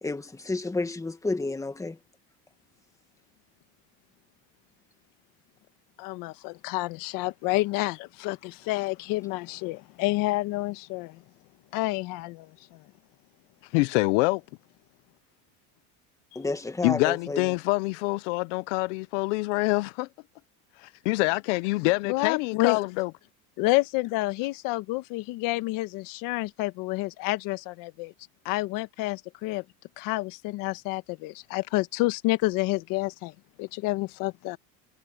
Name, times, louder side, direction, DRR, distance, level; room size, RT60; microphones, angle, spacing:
voice 1, 0.0-2.0 16.3-17.5, left 3 dB, 10° left, 1.8 m, -31 dB
voice 2, 6.0-11.2 11.7-12.8 22.1-22.8 23.6-28.1 28.4-29.6 30.0-33.3 33.6-34.6, left 20 dB, 70° left, 1.4 m, -29 dB
voice 3, 13.7-14.4 16.8-20.1 20.8-23.1, left 24 dB, 85° left, 0.6 m, -26 dB
cardioid pair, 130°, 35 cm